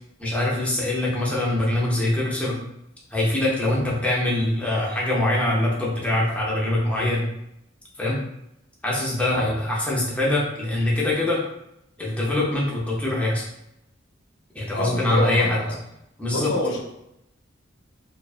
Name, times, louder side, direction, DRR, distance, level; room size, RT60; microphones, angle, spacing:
voice 1, 0.2-2.6 3.1-7.3 8.0-8.2 8.8-11.4 12.0-13.4 14.5-15.6 16.2-16.5, left 1 dB, 5° left, -5 dB, 0.6 m, -23 dB
voice 2, 14.7-15.8 16.3-16.8, left 2 dB, 65° left, 1 dB, 0.5 m, -28 dB
2.5 x 2.2 x 2.4 m, 0.83 s
head